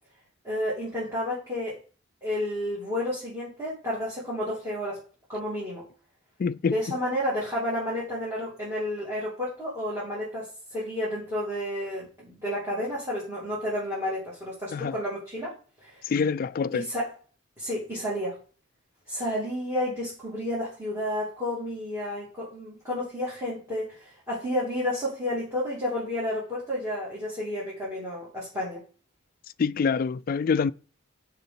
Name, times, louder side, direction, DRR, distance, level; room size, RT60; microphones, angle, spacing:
voice 1, 0.4-1.8 2.2-5.0 5.3-5.9 6.6-15.5 15.8-16.0 16.7-17.1 17.6-18.4 19.1-28.8, left 1 dB, 15° right, 2.6 m, -31 dB
voice 2, 6.4-6.8 14.7-15.0 16.1-16.9 29.6-30.7, left 5 dB, 45° left, 0.3 m, -25 dB
6.6 x 4.9 x 5.9 m
head